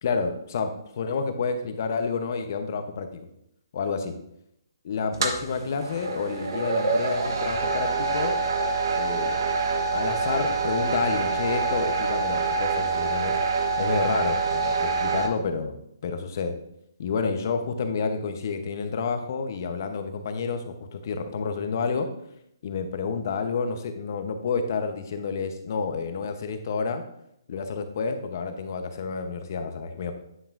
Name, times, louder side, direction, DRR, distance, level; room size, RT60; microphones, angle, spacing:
voice 1, 0.0-3.3 3.7-4.2 4.8-8.3 8.9-9.4 9.9-13.4 13.8-15.8 16.0-16.6 17.0-22.1 22.6-27.0 27.5-30.1, left 5 dB, 45° left, 7 dB, 0.9 m, -29 dB
sound 1, 5.1-15.3, right 4 dB, 60° right, 1.0 m, -26 dB
9.8 x 5.4 x 2.6 m, 0.76 s
hypercardioid pair, 155°, 2 cm